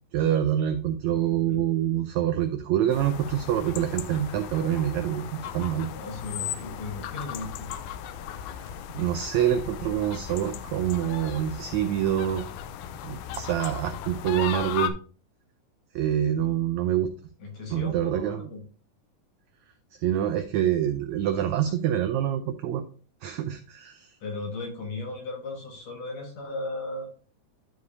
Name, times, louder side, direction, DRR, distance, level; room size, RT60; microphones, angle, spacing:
voice 1, 0.1-5.9 8.5-12.4 13.0-14.9 15.9-17.1 17.7-18.5 20.0-22.8 23.2-24.1, right 10 dB, 85° right, 7 dB, 1.6 m, -26 dB
voice 2, 1.1-1.6 5.8-7.7 17.4-18.6 24.2-27.1, left 2 dB, 60° left, 1 dB, 2.3 m, -36 dB
sound 1, 2.9-14.9, left 10 dB, 80° left, 1.9 m, -36 dB
11.5 x 4.8 x 2.7 m, 0.40 s
omnidirectional pair, 3.9 m